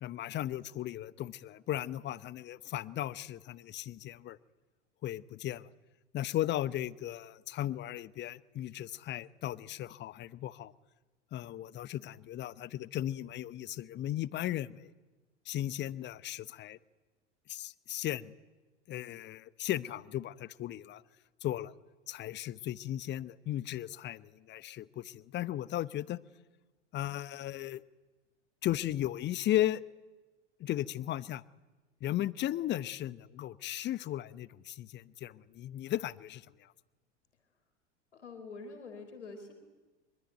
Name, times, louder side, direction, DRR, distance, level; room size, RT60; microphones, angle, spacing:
voice 1, 0.0-4.4 5.0-5.7 6.1-10.7 11.3-14.9 15.5-16.8 17.5-18.3 18.9-21.0 21.4-21.7 22.1-26.2 26.9-27.8 28.6-29.8 30.6-31.4 32.0-36.7, left 13 dB, 30° left, 18 dB, 0.9 m, -36 dB
voice 2, 38.1-39.5, left 3 dB, 80° left, 6 dB, 4.2 m, -46 dB
24.5 x 24.5 x 9.2 m, 1.2 s
figure-of-eight pair, 80°, 35 cm